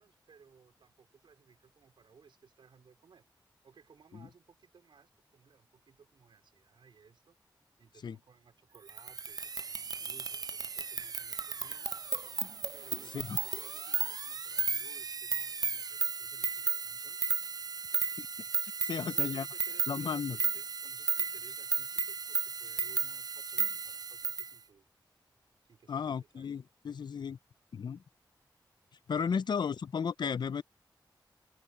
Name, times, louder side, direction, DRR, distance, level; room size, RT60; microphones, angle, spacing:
voice 1, 0.0-3.3 3.6-7.4 7.8-11.9 12.7-17.2 18.9-24.9 25.6-26.5 29.3-29.4, right 6 dB, 90° right, 4.5 m, -60 dB
sound 1, 8.9-24.5, right 5 dB, 50° right, 0.5 m, -34 dB
voice 2, 18.8-19.5 19.9-20.4 25.9-27.4 27.7-28.0 29.1-30.6, left 6 dB, 65° left, 0.5 m, -34 dB
wide cardioid pair, 95°, 8 cm